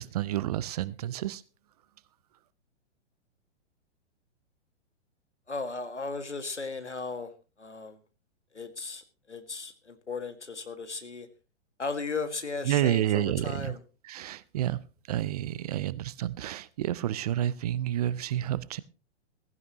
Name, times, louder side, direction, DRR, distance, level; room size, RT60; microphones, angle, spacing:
voice 1, 0.0-1.4 12.7-13.8 14.0-14.8 15.1-18.8, right 12 dB, 35° right, 20 dB, 0.6 m, -29 dB
voice 2, 5.5-7.3 7.6-8.0 8.5-11.3 11.8-13.8, left 4 dB, 80° left, 9 dB, 2.0 m, -36 dB
16.0 x 15.5 x 3.0 m, 0.33 s
figure-of-eight pair, 110°, 35 cm